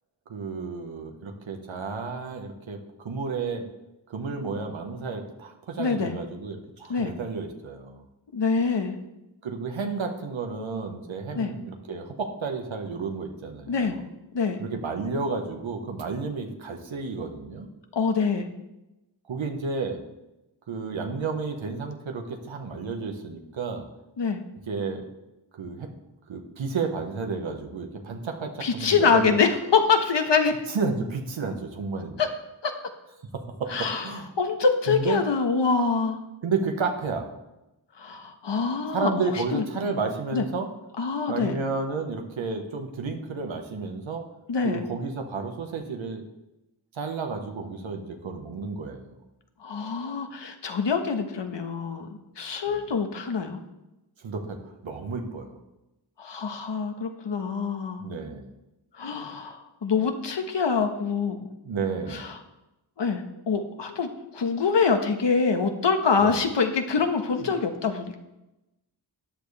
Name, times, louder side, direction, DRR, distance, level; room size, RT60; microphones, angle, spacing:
voice 1, 0.3-2.8 3.0-3.6 4.1-8.0 9.4-14.0 14.6-17.7 19.3-20.0 20.7-23.9 24.7-25.0 25.5-25.9 26.3-29.4 30.7-32.2 33.3-34.3 34.9-35.2 36.4-37.3 38.9-40.7 41.3-44.2 44.6-46.2 46.9-49.2 52.7-52.8 54.2-54.6 54.8-55.6 58.0-58.5 61.6-62.3 66.2-66.4 67.3-67.5, right 4 dB, 90° right, 3 dB, 1.5 m, -31 dB
voice 2, 5.8-6.2 6.9-7.1 8.3-9.0 11.3-11.5 13.7-14.0 14.3-14.6 17.9-18.5 24.2-24.4 28.6-30.6 32.2-32.3 32.6-32.7 33.7-34.1 34.4-36.2 38.0-39.1 39.5-39.6 40.3-40.4 41.0-41.6 44.5-44.8 49.6-52.1 52.4-53.6 56.2-58.0 59.0-61.5 62.1-62.4 63.0-68.2, left 5 dB, 65° left, 5 dB, 1.4 m, -25 dB
13.5 x 9.8 x 3.5 m, 0.96 s
wide cardioid pair, 75°, 46 cm